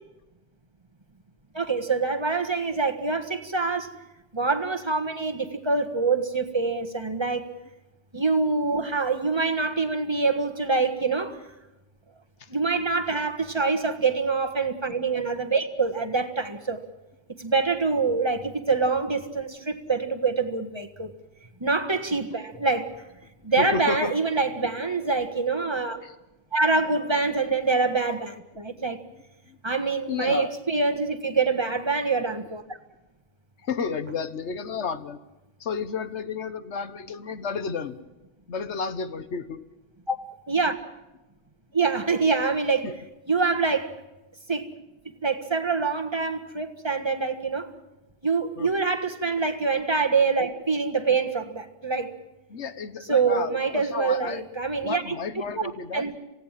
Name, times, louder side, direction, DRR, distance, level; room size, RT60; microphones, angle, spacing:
voice 1, 1.5-3.9 4.3-7.4 8.1-11.4 12.5-16.8 17.4-21.1 21.6-22.9 23.4-26.0 26.5-29.0 29.6-32.8 40.1-40.2 40.5-40.7 41.7-42.8 43.3-43.9 44.5-44.7 45.2-47.7 48.2-52.1 53.1-55.1 55.5-56.2, right 4 dB, 20° right, 6 dB, 1.6 m, -25 dB
voice 2, 23.6-24.2 26.0-26.1 29.4-29.6 30.1-30.5 33.6-35.2 35.6-38.0 38.5-39.6 42.8-42.9 48.6-48.7 52.5-54.4 54.8-56.1, left 5 dB, 70° left, 12 dB, 1.5 m, -32 dB
27.5 x 17.0 x 7.6 m, 1.0 s
omnidirectional pair, 1.3 m